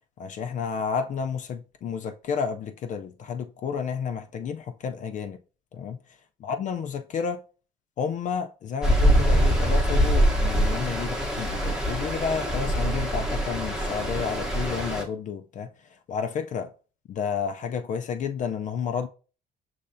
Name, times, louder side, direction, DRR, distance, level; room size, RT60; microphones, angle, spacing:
voice 1, 0.2-5.4 5.7-6.0 6.4-7.4 8.0-16.7 17.1-19.1, left 6 dB, 50° left, 0.4 m, -31 dB
Stream, 8.8-15.0, equal, 5° right, 0.9 m, -23 dB
5.4 x 3.2 x 2.5 m
cardioid pair, 110°, 17 cm